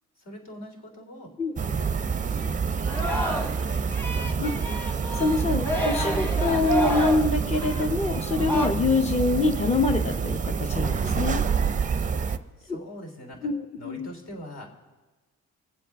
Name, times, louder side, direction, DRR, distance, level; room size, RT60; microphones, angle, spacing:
voice 1, 0.2-1.3 1.8-4.3 12.6-13.5 13.8-14.7, equal, 60° left, 1 dB, 2.9 m, -44 dB
sound 1, 1.6-12.4, right 6 dB, 25° right, 0.5 m, -27 dB
Singing, 2.8-3.6 3.9-8.7, equal, 5° left, 1.3 m, -30 dB
voice 2, 4.4-11.4 13.4-14.1, left 3 dB, 20° left, 2 dB, 0.8 m, -25 dB
21.5 x 7.8 x 3.5 m, 1.3 s
cardioid pair, 90°, 30 cm